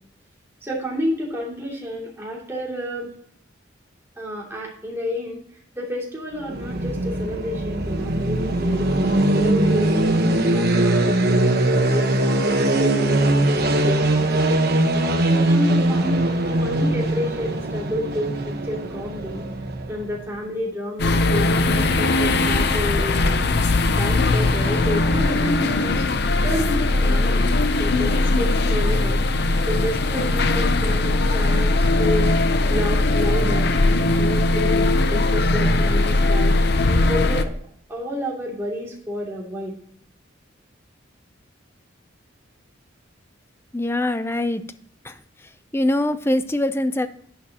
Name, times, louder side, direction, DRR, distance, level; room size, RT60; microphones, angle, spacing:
voice 1, 0.6-3.1 4.2-5.4 5.7-8.9 9.3-14.6 15.3-19.4 19.9-23.4 23.9-26.1 26.4-27.5 27.8-29.2 29.7-32.3 32.7-36.6 36.9-37.5 37.9-39.8, left 1 dB, 15° right, -4 dB, 2.7 m, -30 dB
sound 1, 6.4-20.3, right 1 dB, 50° right, 1.1 m, -21 dB
sound 2, 21.0-37.4, left 2 dB, 55° left, 0.7 m, -19 dB
voice 2, 43.7-44.7 45.0-45.1 45.7-47.1, left 1 dB, 10° left, 12 dB, 0.5 m, -23 dB
11.0 x 9.1 x 2.9 m, 0.62 s
head